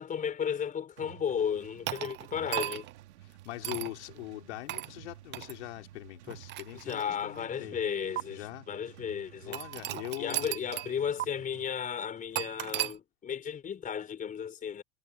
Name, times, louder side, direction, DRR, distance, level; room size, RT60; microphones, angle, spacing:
voice 1, 0.0-2.9 6.8-8.4 8.7-9.6 10.2-14.8, left 8 dB, 25° left, 4.2 m, -34 dB
sound 1, 1.0-11.7, right 14 dB, 85° right, 3.4 m, -53 dB
sound 2, 1.9-3.0 3.6-3.9 4.7-4.9 5.3-5.5 6.3-7.4 8.2-8.3 9.5-10.9 11.2-11.3 12.3-12.9, right 16 dB, 35° right, 0.6 m, -35 dB
voice 2, 3.2-7.8 8.3-8.7 9.4-10.5, left 17 dB, 85° left, 4.9 m, -42 dB
supercardioid pair, 135°, 33 cm